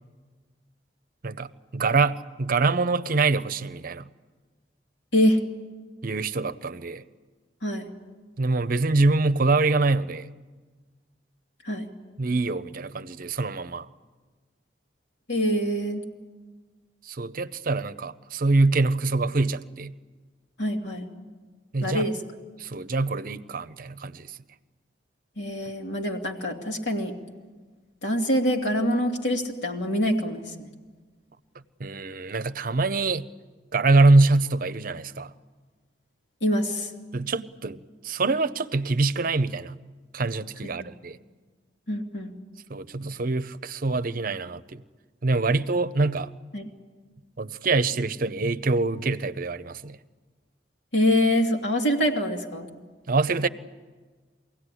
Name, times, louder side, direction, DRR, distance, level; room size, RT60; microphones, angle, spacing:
voice 1, 1.2-4.1 6.0-7.0 8.4-10.3 12.2-13.9 17.1-19.9 21.7-22.1 22.6-24.3 31.8-33.3 33.7-35.3 37.1-39.7 40.1-41.2 42.7-44.8 45.2-46.3 47.4-50.0 53.1-53.5, right 3 dB, 55° right, 0.7 m, -24 dB
voice 2, 5.1-5.4 7.6-7.9 11.6-11.9 15.3-16.0 20.6-21.1 21.8-22.2 25.4-27.1 28.0-30.7 36.4-36.9 40.6-40.9 41.9-42.3 46.5-46.7 50.9-52.7, equal, 85° left, 2.8 m, -25 dB
24.0 x 17.0 x 10.0 m
head